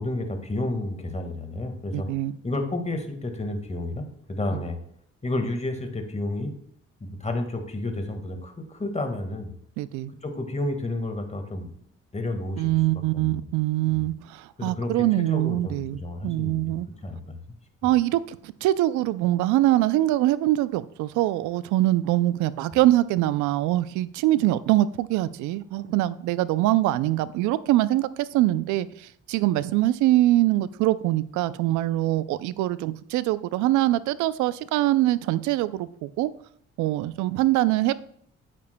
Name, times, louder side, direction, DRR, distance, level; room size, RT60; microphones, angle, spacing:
voice 1, 0.0-2.1 2.4-4.8 5.2-6.5 7.0-9.5 10.2-11.7 12.1-13.5 13.9-14.1 14.6-16.7 17.0-17.4 17.8-17.9, left 2 dB, 25° left, 5 dB, 1.7 m, -31 dB
voice 2, 1.9-2.4 9.8-10.1 12.6-16.9 17.8-36.3 36.8-37.9, right 15 dB, 85° right, 17 dB, 0.5 m, -23 dB
9.6 x 8.5 x 2.2 m, 0.65 s
supercardioid pair, 65°, 29 cm